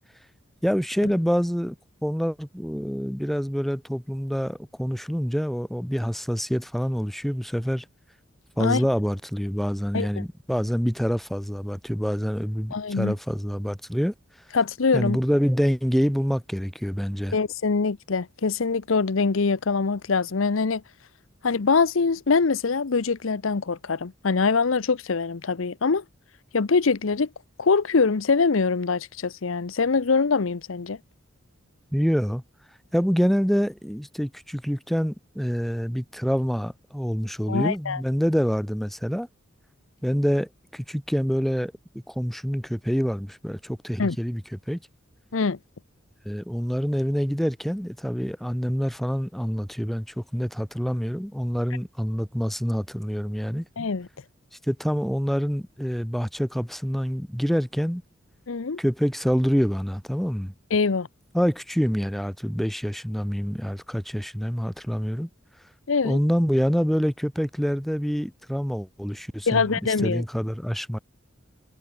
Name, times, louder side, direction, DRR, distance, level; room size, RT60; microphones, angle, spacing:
voice 1, 0.6-1.8 2.0-7.9 8.6-14.1 14.9-17.4 31.9-32.4 32.9-39.3 40.0-44.8 46.3-53.7 54.7-58.0 58.8-60.5 61.3-65.3 66.0-71.0, equal, ahead, 1.9 m, -26 dB
voice 2, 12.7-13.1 14.5-15.2 17.3-20.8 21.4-26.0 26.5-27.3 27.6-31.0 37.5-38.0 44.0-44.2 45.3-45.6 53.8-54.1 58.5-58.8 60.7-61.1 65.9-66.2 69.5-70.2, left 4 dB, 80° left, 0.7 m, -23 dB
head